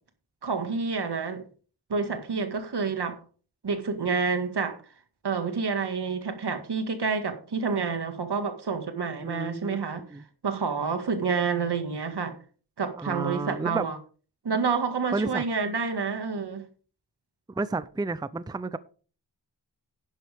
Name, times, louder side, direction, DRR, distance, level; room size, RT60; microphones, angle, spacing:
voice 1, 0.4-1.4 1.9-3.2 3.6-4.8 5.2-12.4 12.8-14.0 14.4-16.6, right 5 dB, 70° right, 1.9 m, -28 dB
voice 2, 9.2-9.8 10.1-10.2 13.0-13.8 15.1-15.4 17.6-18.8, right 3 dB, 10° right, 0.5 m, -31 dB
11.0 x 10.5 x 3.5 m
wide cardioid pair, 85°, 41 cm